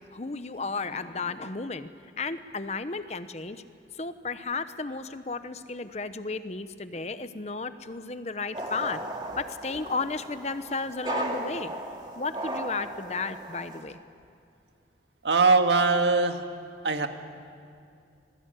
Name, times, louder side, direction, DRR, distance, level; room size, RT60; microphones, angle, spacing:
voice 1, 0.1-1.9 2.2-3.6 4.0-9.0 9.3-11.7 12.2-14.0, left 4 dB, 40° left, 11 dB, 0.9 m, -33 dB
sound 1, 8.5-13.8, right 1 dB, 25° right, 2.5 m, -36 dB
voice 2, 15.2-16.4 16.8-17.1, right 4 dB, 85° right, 6 dB, 1.8 m, -21 dB
26.5 x 20.5 x 9.1 m, 2.4 s
head